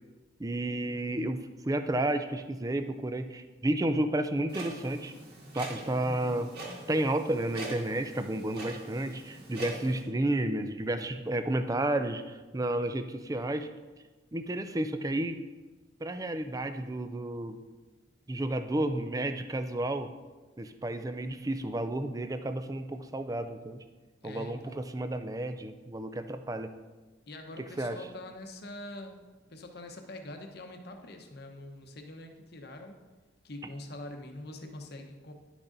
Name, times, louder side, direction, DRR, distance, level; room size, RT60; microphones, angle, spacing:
voice 1, 0.4-5.1 5.5-6.5 6.9-13.7 14.3-15.4 16.0-17.6 18.3-20.1 20.6-23.8 24.2-26.7 27.8-28.0, right 1 dB, 20° right, 9 dB, 0.4 m, -31 dB
Clock, 4.5-10.0, right 2 dB, 55° right, 2.0 m, -43 dB
voice 2, 24.2-24.8 27.3-29.2 29.5-33.0 33.4-35.3, left 1 dB, 55° left, 4 dB, 1.0 m, -44 dB
10.5 x 6.2 x 4.0 m, 1.2 s
head